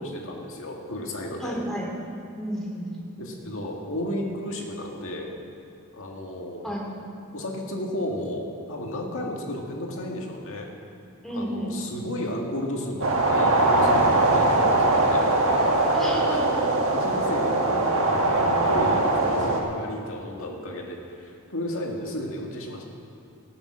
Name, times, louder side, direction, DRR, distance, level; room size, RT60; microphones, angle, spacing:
voice 1, 0.0-1.5 3.2-5.3 5.9-6.7 7.3-10.7 11.3-15.3 16.3-16.6 16.9-22.8, left 1 dB, 65° left, 0 dB, 2.0 m, -33 dB
voice 2, 1.4-1.9 2.4-2.9 6.6-6.8 11.2-11.7 15.9-16.6, equal, ahead, -4 dB, 2.9 m, -31 dB
sound 1, 13.0-19.6, right 2 dB, 65° right, 1.6 m, -21 dB
18.0 x 7.1 x 6.4 m, 2.6 s
head